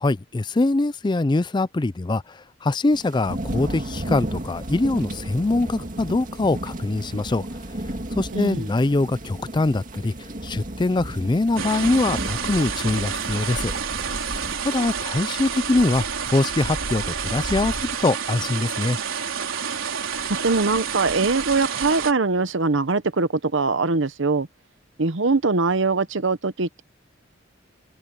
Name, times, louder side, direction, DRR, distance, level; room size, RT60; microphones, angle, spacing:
voice 1, 0.0-2.2 2.6-7.4 8.2-10.1 10.4-13.7 14.3-14.4 14.6-16.0 16.3-19.0, left 2 dB, 20° left, 0.4 m, -23 dB
sound 1, 2.9-14.6, right 1 dB, 40° right, 2.2 m, -34 dB
voice 2, 8.3-8.7 20.4-24.5 25.0-26.8, right 3 dB, 65° right, 1.0 m, -22 dB
sound 2, 11.6-22.1, right 6 dB, 85° right, 4.2 m, -29 dB
open air
head